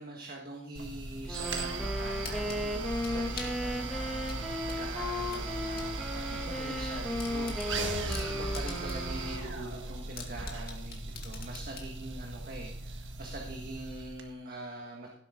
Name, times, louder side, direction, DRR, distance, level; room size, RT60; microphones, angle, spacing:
voice 1, 0.0-15.1, right 2 dB, 50° right, 0 dB, 1.7 m, -43 dB
sound 1, 0.7-14.2, right 3 dB, 75° right, 1.6 m, -38 dB
Wind instrument woodwind instrument, 1.2-9.9, left 1 dB, ahead, 1.9 m, -36 dB
sound 2, 1.3-1.7 2.2-3.6 4.3-5.9 6.3-6.4 6.8-6.9 7.2-9.1 9.5-9.6 10.2-11.9, left 7 dB, 50° left, 2.2 m, -45 dB
16.5 x 8.1 x 3.8 m, 0.68 s
head